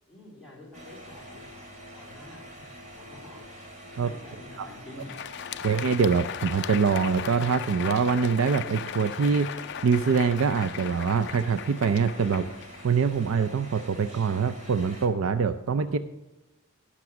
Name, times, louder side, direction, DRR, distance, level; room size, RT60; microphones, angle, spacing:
voice 1, 0.1-1.4 1.9-5.2 5.5-5.7, left 1 dB, ahead, -6 dB, 3.9 m, -48 dB
sound 1, 0.7-15.1, equal, 35° right, 2.5 m, -46 dB
Crowd, 4.9-13.4, left 9 dB, 55° left, 0.4 m, -37 dB
voice 2, 5.6-9.5 9.8-12.5 12.8-16.0, right 5 dB, 80° right, 11 dB, 0.5 m, -24 dB
17.0 x 6.1 x 5.9 m, 1.0 s
head